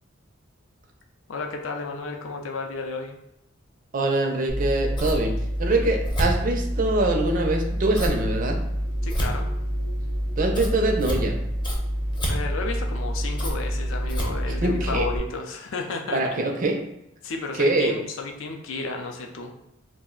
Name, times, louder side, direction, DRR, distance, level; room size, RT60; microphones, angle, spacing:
voice 1, 1.3-3.2 9.0-9.5 12.3-16.2 17.2-19.5, left 3 dB, 75° left, 3 dB, 0.4 m, -32 dB
voice 2, 3.9-5.3 5.6-8.6 10.4-11.4 14.6-15.1 16.1-16.7 17.6-17.9, right 2 dB, 45° right, 2 dB, 0.4 m, -23 dB
Scissors, 4.5-15.2, equal, 25° left, 0.6 m, -27 dB
2.4 x 2.0 x 3.7 m, 0.80 s
head